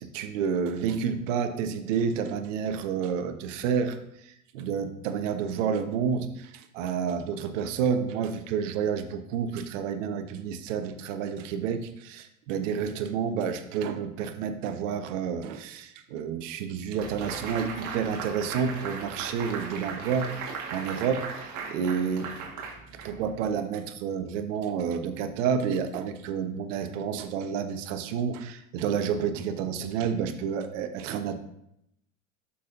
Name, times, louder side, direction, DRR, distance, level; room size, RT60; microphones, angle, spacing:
voice 1, 0.0-4.0 4.2-22.3 22.9-31.4, right 7 dB, 60° right, 9 dB, 1.0 m, -30 dB
sound 1, 17.0-23.4, right 5 dB, 45° right, 1.7 m, -38 dB
11.5 x 5.7 x 2.6 m, 0.79 s
figure-of-eight pair, 75°, 42 cm